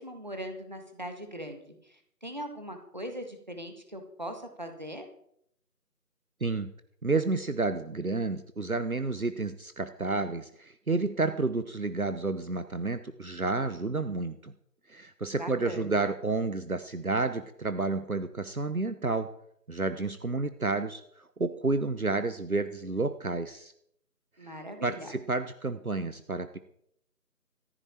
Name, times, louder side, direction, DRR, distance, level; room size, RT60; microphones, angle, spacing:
voice 1, 0.0-5.0 15.4-16.1 24.4-25.1, equal, 25° right, 5 dB, 1.7 m, -40 dB
voice 2, 6.4-6.7 7.0-14.5 14.9-19.3 19.7-23.7 24.4-26.6, right 3 dB, 60° right, 11 dB, 1.1 m, -30 dB
15.0 x 14.5 x 4.5 m, 0.71 s
figure-of-eight pair, 170°, 48 cm